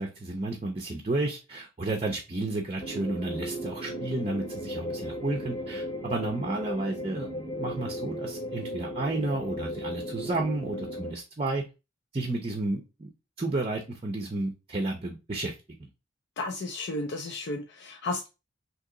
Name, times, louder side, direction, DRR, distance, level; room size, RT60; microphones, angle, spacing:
voice 1, 0.0-7.3 7.6-11.6 12.1-13.1 13.4-15.5, right 2 dB, 30° right, 1 dB, 0.5 m, -32 dB
sound 1, 2.8-11.1, equal, 20° left, 0.8 m, -36 dB
voice 2, 16.4-18.3, left 2 dB, 55° left, 3 dB, 0.4 m, -33 dB
2.9 x 2.9 x 3.6 m, 0.28 s
head